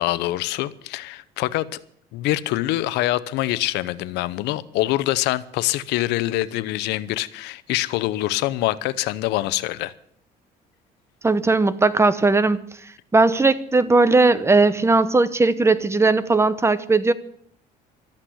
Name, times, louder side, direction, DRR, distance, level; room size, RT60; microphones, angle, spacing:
voice 1, 0.0-1.7 2.1-9.9, left 16 dB, 90° left, 0.8 m, -24 dB
voice 2, 11.2-12.6 13.1-17.1, right 3 dB, 15° right, 0.9 m, -18 dB
13.0 x 9.0 x 9.7 m
cardioid pair, 110°, 17 cm